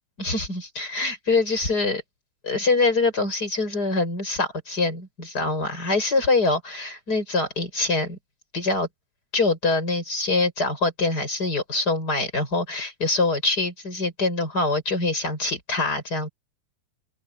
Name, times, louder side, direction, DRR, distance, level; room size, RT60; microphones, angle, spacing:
voice 1, 0.2-2.0 2.4-8.2 8.5-8.9 9.3-16.3, left 3 dB, 25° left, 7.5 m, -24 dB
open air
omnidirectional pair, 3.7 m